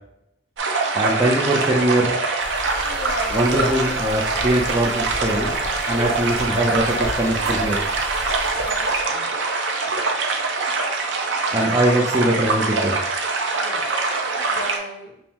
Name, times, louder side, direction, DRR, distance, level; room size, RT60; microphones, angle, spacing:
sound 1, 0.6-14.8, right 3 dB, 85° right, 0.6 m, -24 dB
voice 1, 0.9-2.1 3.3-5.5 5.9-7.8 11.5-13.0, right 1 dB, 15° right, -4 dB, 0.5 m, -21 dB
sound 2, 2.4-9.1, equal, ahead, 1.1 m, -36 dB
voice 2, 2.8-4.1 5.3-6.5 6.9-7.9 8.5-10.4 13.5-13.9 14.3-15.2, left 1 dB, 60° left, 2 dB, 0.7 m, -36 dB
5.3 x 2.0 x 2.9 m, 0.80 s
head